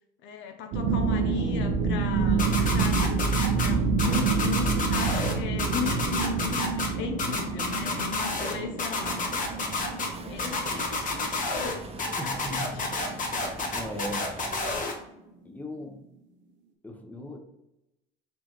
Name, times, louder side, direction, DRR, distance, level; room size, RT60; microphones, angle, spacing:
voice 1, 0.2-3.3 3.6-9.2 10.3-12.9, left 8 dB, 70° left, 5 dB, 0.7 m, -37 dB
sound 1, 0.7-13.6, right 5 dB, 65° right, 0.7 m, -28 dB
sound 2, 2.4-3.7 4.0-5.3 5.6-6.9 7.2-8.5 8.8-10.1 10.4-11.7 12.0-14.9, left 3 dB, 40° left, 1.2 m, -29 dB
sound 3, 9.0-14.8, right 3 dB, 30° right, 0.8 m, -42 dB
voice 2, 12.2-12.8 13.7-14.3 15.4-16.0 16.8-17.4, left 1 dB, 10° left, 3 dB, 0.9 m, -37 dB
4.3 x 3.4 x 3.1 m, 0.87 s
supercardioid pair, 80°, 20 cm